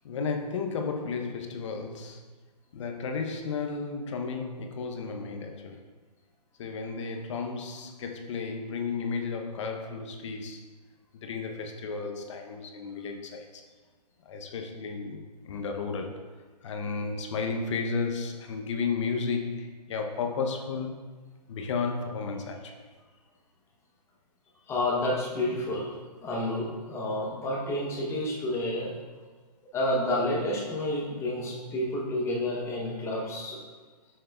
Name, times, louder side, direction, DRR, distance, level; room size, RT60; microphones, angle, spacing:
voice 1, 0.0-2.2 2.7-5.9 6.6-10.6 11.2-13.6 14.2-16.2 16.6-21.0 21.5-22.9 33.1-33.2, left 4 dB, 45° left, 4 dB, 0.7 m, -33 dB
voice 2, 24.7-25.9 26.2-28.9 29.7-33.6, left 1 dB, 10° left, -2 dB, 0.9 m, -30 dB
7.3 x 6.4 x 2.3 m, 1.4 s
hypercardioid pair, 140°, 21 cm